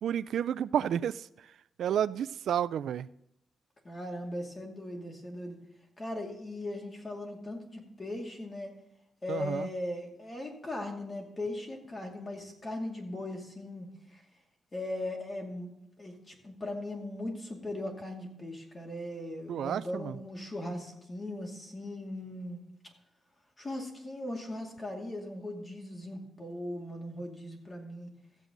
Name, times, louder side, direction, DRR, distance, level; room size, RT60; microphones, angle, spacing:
voice 1, 0.0-1.3 1.8-3.1 9.3-9.7 19.5-20.1, right 9 dB, 85° right, 16 dB, 0.3 m, -31 dB
voice 2, 3.8-5.6 6.0-8.7 9.2-14.2 14.7-15.7 16.0-22.6 23.6-28.1, left 1 dB, 25° left, 1 dB, 2.5 m, -39 dB
14.5 x 8.2 x 3.9 m, 0.80 s
wide cardioid pair, 130°, 0 cm